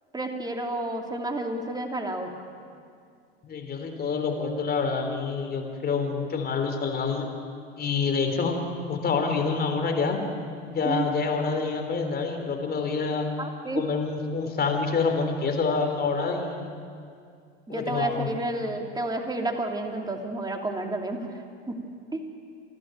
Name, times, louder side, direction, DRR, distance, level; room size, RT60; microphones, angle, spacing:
voice 1, 0.1-2.3 10.8-11.1 13.4-13.8 17.7-21.8 22.1-22.2, right 2 dB, 10° right, 3 dB, 2.6 m, -30 dB
voice 2, 3.4-7.3 7.8-8.6 8.9-10.2 10.7-13.3 13.7-16.7 17.7-18.3, left 4 dB, 25° left, 4 dB, 3.6 m, -27 dB
28.5 x 12.0 x 9.2 m, 2.3 s
hypercardioid pair, 100°, 35 cm